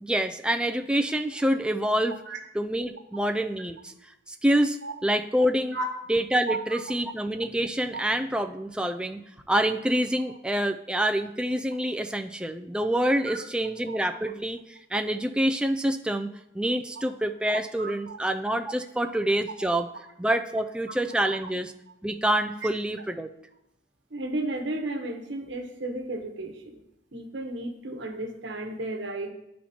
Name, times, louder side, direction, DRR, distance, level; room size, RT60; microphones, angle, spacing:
voice 1, 0.0-2.2 2.5-5.8 6.1-9.2 9.5-16.3 16.5-19.9 20.2-21.7 22.0-23.3, right 1 dB, 5° right, 6 dB, 0.3 m, -27 dB
voice 2, 6.5-6.8 7.9-8.0 13.2-13.4 13.9-14.0 17.8-18.2 19.6-19.7 21.3-21.4 24.1-26.8 27.1-29.3, right 2 dB, 70° right, 5 dB, 1.1 m, -33 dB
11.0 x 4.2 x 4.3 m, 0.83 s
head